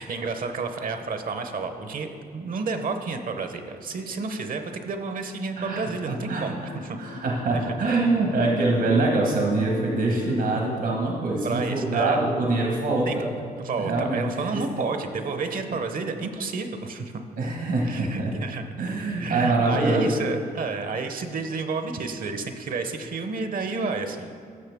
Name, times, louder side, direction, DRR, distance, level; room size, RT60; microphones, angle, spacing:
voice 1, 0.0-7.0 7.5-7.6 11.4-12.2 13.1-13.2 13.6-17.1 17.8-18.6 19.0-24.3, right 4 dB, 55° right, 7 dB, 0.8 m, -30 dB
sound 1, 5.6-10.8, left 7 dB, 75° left, 0.5 m, -39 dB
voice 2, 5.6-6.5 7.0-13.2 13.8-14.6 17.4-18.3 18.8-20.1, right 2 dB, 80° right, -1 dB, 1.5 m, -24 dB
13.0 x 6.3 x 3.5 m, 2.2 s
cardioid pair, 75°, 17 cm